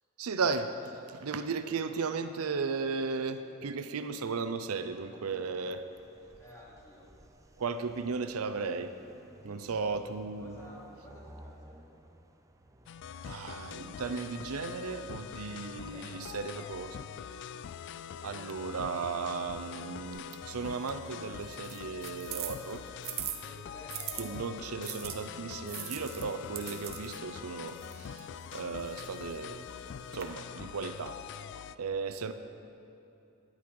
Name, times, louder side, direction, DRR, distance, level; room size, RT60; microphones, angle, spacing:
voice 1, 0.2-5.8 7.6-8.9 9.4-10.6 13.2-17.0 18.2-22.9 24.2-29.6 30.1-31.2 31.8-32.3, right 4 dB, 80° right, 10 dB, 0.5 m, -35 dB
sound 1, 4.9-21.3, right 1 dB, 15° right, 0.5 m, -58 dB
voice 2, 6.4-7.1 9.4-10.1 10.4-11.8 15.7-17.4 23.4-24.4, left 1 dB, 15° left, -5 dB, 2.6 m, -53 dB
sound 2, 12.9-31.8, left 7 dB, 55° left, 0.3 m, -44 dB
sound 3, 20.1-24.2 24.8-30.2, right 10 dB, 50° right, 0.9 m, -43 dB
12.0 x 11.0 x 4.7 m, 2.8 s
head